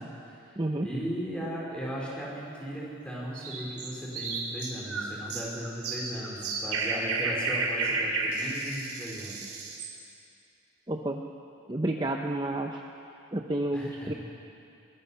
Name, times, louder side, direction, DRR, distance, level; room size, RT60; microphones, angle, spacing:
voice 1, 0.0-9.5 13.7-14.1, equal, 5° left, -4 dB, 4.5 m, -37 dB
voice 2, 0.6-0.9 10.9-11.2 11.7-12.8 13.3-14.1, right 1 dB, 20° right, 2 dB, 0.7 m, -30 dB
sound 1, 3.3-9.9, right 3 dB, 85° right, 3.6 m, -32 dB
22.5 x 21.0 x 5.7 m, 2.6 s
head